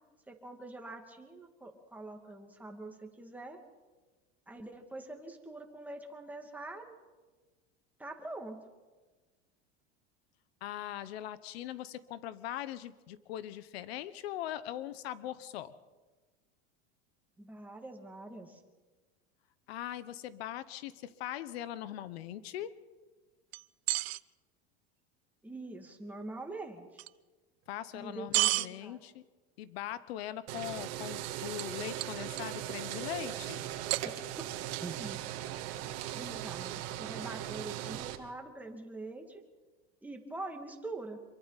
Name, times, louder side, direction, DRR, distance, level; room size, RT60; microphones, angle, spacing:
voice 1, 0.3-3.6 4.5-7.0 8.0-8.7 17.4-18.6 25.4-27.0 27.9-29.0 34.0-34.1 34.8-35.2 36.1-39.4 40.0-41.2, right 2 dB, 5° right, 2 dB, 2.3 m, -44 dB
voice 2, 10.6-15.7 19.7-22.7 27.7-29.2 29.6-33.6, left 12 dB, 85° left, 15 dB, 1.1 m, -41 dB
sound 1, 23.5-24.2 27.0-27.1 28.3-28.7 31.2-31.3 31.6-31.7 32.0-32.6 33.9-34.5, right 21 dB, 80° right, 0.7 m, -31 dB
sound 2, 30.5-38.2, right 13 dB, 55° right, 2.1 m, -39 dB
27.0 x 23.5 x 4.1 m, 1.3 s
supercardioid pair, 135°, 30 cm